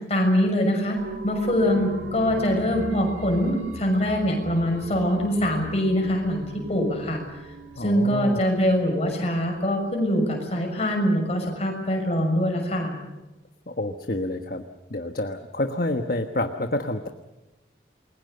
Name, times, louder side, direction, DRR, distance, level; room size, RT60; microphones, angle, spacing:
voice 1, 0.1-1.0 1.2-7.2 7.8-12.9, equal, 35° left, 2 dB, 6.6 m, -23 dB
sound 1, 1.0-10.3 10.7-10.8, right 1 dB, 85° right, 3.0 m, -40 dB
voice 2, 7.8-8.5 13.7-14.6 14.9-17.1, left 1 dB, 50° left, 6 dB, 1.3 m, -28 dB
29.0 x 22.0 x 6.8 m, 1.0 s
head